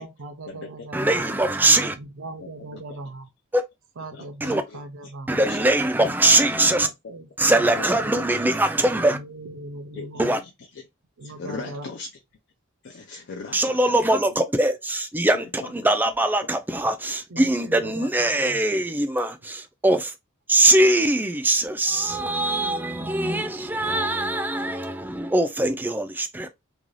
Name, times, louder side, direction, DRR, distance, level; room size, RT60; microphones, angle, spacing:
voice 1, 0.0-1.3 1.9-3.3 4.0-5.4 6.0-8.1 9.1-10.4 11.2-11.9 17.3-18.6 22.9-23.6, right 2 dB, 65° right, 0.5 m, -40 dB
voice 2, 0.9-2.0 3.5-3.6 4.4-4.6 5.3-6.9 7.4-9.2 10.2-10.4 13.5-20.1 20.5-26.5, right 1 dB, 10° right, 0.3 m, -22 dB
voice 3, 2.4-2.8 4.1-5.7 6.8-7.1 7.7-8.0 9.9-10.9 11.2-12.2 12.8-14.3 15.2-15.9 16.4-16.5 17.4-17.7 18.0-18.4, left 4 dB, 55° left, 0.5 m, -40 dB
2.5 x 2.3 x 3.1 m
head